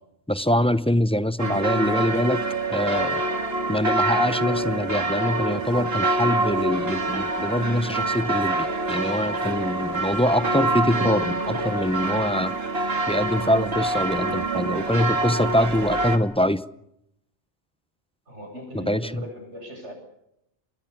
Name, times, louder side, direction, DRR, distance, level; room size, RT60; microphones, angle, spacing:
voice 1, 0.3-2.4 2.7-3.3 3.7-12.6 13.1-16.6 18.7-19.2, equal, 5° left, 13 dB, 0.7 m, -24 dB
sound 1, 1.4-16.2, right 2 dB, 60° right, 2.4 m, -26 dB
voice 2, 18.3-19.9, equal, 85° right, 4 dB, 8.5 m, -39 dB
25.5 x 21.0 x 7.2 m, 0.80 s
omnidirectional pair, 1.2 m